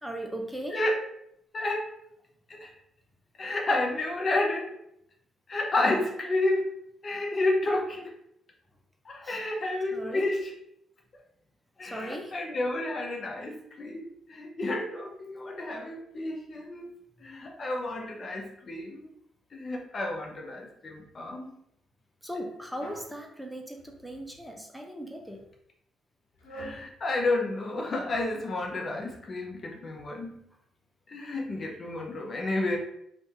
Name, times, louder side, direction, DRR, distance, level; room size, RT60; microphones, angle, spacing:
voice 1, 0.0-0.8 9.2-9.4 9.9-10.3 11.8-12.4 22.2-25.4, equal, ahead, 1 dB, 0.6 m, -38 dB
voice 2, 1.5-1.9 2.5-2.7 3.4-4.8 5.5-6.7 7.0-8.1 9.0-10.5 11.8-16.9 17.2-19.1 19.5-21.5 26.5-30.5 31.1-32.8, left 2 dB, 45° left, 1 dB, 0.7 m, -30 dB
sound 1, 22.8-23.2 23.7-24.4 25.1-25.5 26.4-26.8, right 1 dB, 85° left, 1.0 m, -45 dB
2.7 x 2.5 x 3.6 m, 0.74 s
supercardioid pair, 55°, 0 cm